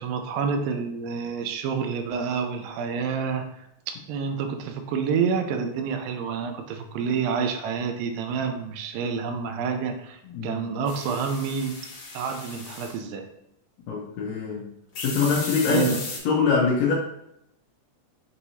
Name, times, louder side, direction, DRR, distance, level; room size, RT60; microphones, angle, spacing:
voice 1, 0.0-11.8 12.1-13.3 15.7-16.0, right 6 dB, 85° right, 6 dB, 2.3 m, -28 dB
sound 1, 10.9-13.0 15.0-16.2, left 3 dB, 60° left, 1.9 m, -36 dB
voice 2, 13.9-14.6 15.0-15.9 16.2-16.9, left 5 dB, 85° left, -3 dB, 1.5 m, -23 dB
6.4 x 2.9 x 2.7 m, 0.81 s
omnidirectional pair, 3.9 m